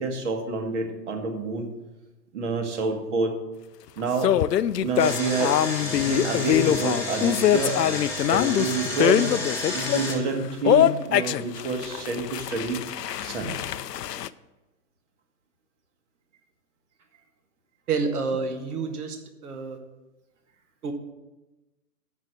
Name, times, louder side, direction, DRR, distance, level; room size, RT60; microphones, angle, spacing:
voice 1, 0.0-1.7 2.3-3.4 4.0-4.4 4.8-5.6 6.0-7.8 8.3-9.3 9.7-12.8 13.2-13.5, right 3 dB, 50° right, 4 dB, 1.8 m, -28 dB
sound 1, 4.2-10.1 10.6-14.3, left 11 dB, 85° left, 0.6 m, -23 dB
Engine, 5.0-10.1, left 2 dB, 5° left, 1.8 m, -31 dB
voice 2, 17.9-19.2 19.4-19.8 20.8-20.9, right 4 dB, 65° right, 4 dB, 1.7 m, -28 dB
7.4 x 6.6 x 7.6 m, 1.1 s
hypercardioid pair, 145°, 48 cm